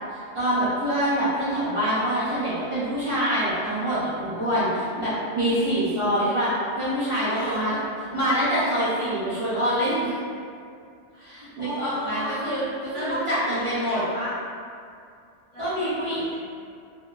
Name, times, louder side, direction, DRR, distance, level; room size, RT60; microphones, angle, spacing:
voice 1, 0.1-7.8 8.1-10.1 11.2-14.0 15.6-16.2, equal, 45° right, -12 dB, 0.4 m, -25 dB
voice 2, 7.3-7.6 11.1-12.3 12.9-14.4 15.5-16.4, equal, 45° left, -13 dB, 0.4 m, -34 dB
2.7 x 2.2 x 2.2 m, 2.4 s
omnidirectional pair, 1.2 m